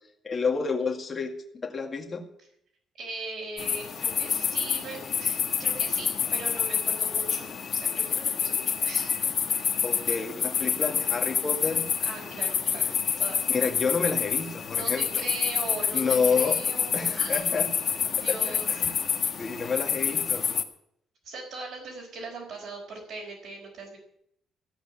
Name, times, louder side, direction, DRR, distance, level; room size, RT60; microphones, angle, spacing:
voice 1, 0.2-2.2 9.8-11.9 13.5-15.1 15.9-16.6 16.9-17.7 18.3-18.9 19.4-20.4, left 5 dB, 25° left, 1 dB, 2.1 m, -29 dB
voice 2, 3.0-9.2 10.0-10.1 12.0-13.5 14.7-17.6 18.1-19.0 21.2-24.0, right 3 dB, 55° right, -2 dB, 4.6 m, -40 dB
sound 1, 3.6-20.6, left 7 dB, 40° left, 1.5 m, -28 dB
15.5 x 8.2 x 9.6 m, 0.72 s
cardioid pair, 170°, 0 cm